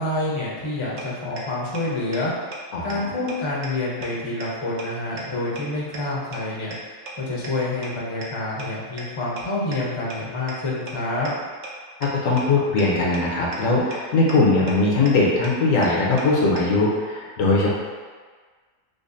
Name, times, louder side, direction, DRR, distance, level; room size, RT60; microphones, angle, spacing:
voice 1, 0.0-2.3 2.8-11.3, left 2 dB, 35° left, -5 dB, 0.5 m, -27 dB
sound 1, 1.0-1.1 1.4-1.5 1.7-1.8 2.1-2.2 2.5-2.6 2.9-3.0 3.3-3.4 3.6-3.7 4.0-4.1 4.4-4.5 4.8-4.9 5.2-5.3 5.5-5.6 5.9-6.0 6.3-6.4 6.7-6.8 7.1-7.2 7.4-7.5 7.8-7.9 8.2-8.3 8.6-8.7 9.0-9.1 9.4-9.5 9.7-9.8 10.1-10.2 10.5-10.6 10.9-11.0 11.2-11.3 11.6-11.7 12.0-12.1 12.4-12.5 12.8-12.9 13.1-13.2 13.5-13.6 13.9-14.0 14.3-14.4 14.7-14.8 15.0-15.1 15.4-15.5 15.8-15.9 16.2-16.3 16.6-16.7, right 4 dB, 70° right, 0.4 m, -35 dB
voice 2, 12.2-17.7, left 3 dB, 80° left, -4 dB, 1.1 m, -20 dB
5.1 x 2.1 x 2.5 m, 1.5 s
omnidirectional pair, 1.4 m